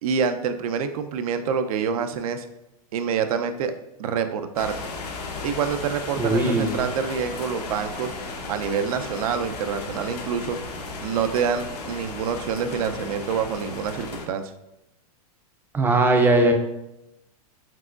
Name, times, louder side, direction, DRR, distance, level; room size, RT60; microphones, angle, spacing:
voice 1, 0.0-2.5 2.9-3.7 4.0-4.7 5.4-8.1 8.5-10.6 11.0-14.4, right 7 dB, 65° right, 9 dB, 0.5 m, -26 dB
sound 1, 4.6-14.3, left 3 dB, 90° left, 0.9 m, -35 dB
voice 2, 6.2-6.7 15.7-16.5, right 2 dB, 10° right, 4 dB, 0.4 m, -19 dB
4.6 x 3.7 x 2.4 m, 0.89 s
hypercardioid pair, 135°, 20 cm